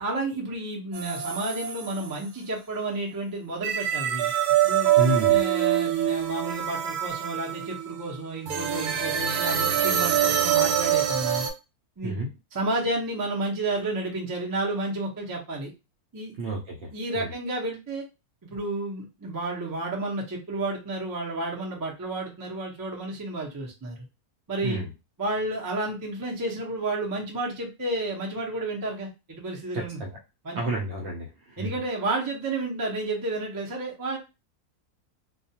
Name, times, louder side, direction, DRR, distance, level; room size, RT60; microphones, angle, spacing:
voice 1, 0.0-4.3 4.6-4.9 5.3-11.5 12.0-12.2 12.5-15.7 16.1-16.3 16.9-18.1 18.5-24.0 24.5-24.8 25.2-30.0 30.4-30.6 31.6-34.2, right 2 dB, 30° right, -2 dB, 0.3 m, -31 dB
sound 1, 0.9-2.1 3.6-11.5, right 10 dB, 85° right, 1.2 m, -25 dB
voice 2, 5.0-5.4 12.0-12.3 16.4-17.3 24.6-24.9 29.7-30.2 30.5-31.7, right 1 dB, 65° right, -1 dB, 0.7 m, -30 dB
2.3 x 2.2 x 2.7 m, 0.27 s
omnidirectional pair, 1.6 m